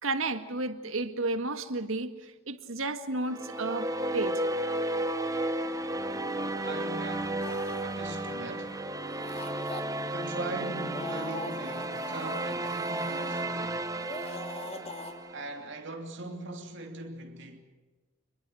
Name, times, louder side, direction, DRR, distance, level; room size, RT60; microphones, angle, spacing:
voice 1, 0.0-4.5, right 2 dB, 80° right, 1.9 m, -32 dB
sound 1, 3.2-15.6, right 1 dB, 15° right, 1.3 m, -33 dB
voice 2, 6.3-8.8 10.1-13.9 15.3-17.6, right 2 dB, 60° right, 2.9 m, -40 dB
sound 2, 7.4-7.8 9.0-9.8 10.7-13.5 13.9-15.1, left 2 dB, 30° left, 2.8 m, -42 dB
28.5 x 22.0 x 6.3 m
head